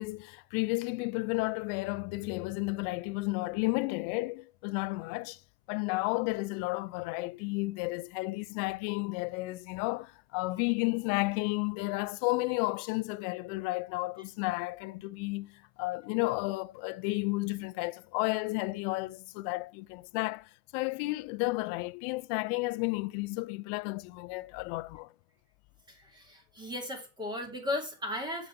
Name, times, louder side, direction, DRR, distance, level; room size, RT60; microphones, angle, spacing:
voice 1, 0.0-5.4 5.7-25.1, left 24 dB, 40° left, 0.4 m, -32 dB
voice 2, 25.9-28.5, left 1 dB, 10° right, 2.4 m, -36 dB
7.8 x 5.9 x 4.9 m
supercardioid pair, 130°, 43 cm